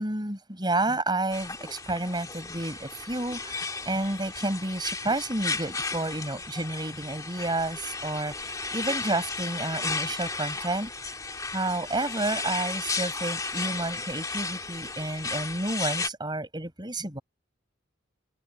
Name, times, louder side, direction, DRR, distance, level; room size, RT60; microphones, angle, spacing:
voice 1, 0.0-10.9 11.5-17.2, right 2 dB, 20° right, 7.2 m, -30 dB
sound 1, 1.3-16.1, left 4 dB, 15° left, 2.4 m, -34 dB
head